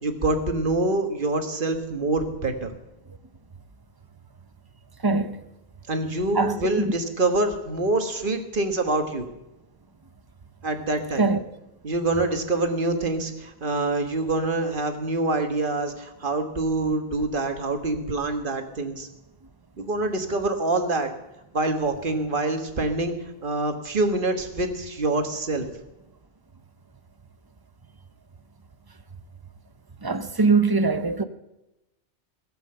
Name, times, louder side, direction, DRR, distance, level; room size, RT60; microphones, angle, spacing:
voice 1, 0.0-2.7 5.9-9.3 10.6-11.3 11.8-19.1 19.8-21.1 21.5-23.1 23.4-25.7, right 2 dB, 50° right, 1.6 m, -25 dB
voice 2, 5.0-5.4 6.3-6.6 11.2-11.4 30.0-31.2, right 4 dB, 25° right, 0.6 m, -22 dB
16.5 x 7.9 x 7.7 m
omnidirectional pair, 1.1 m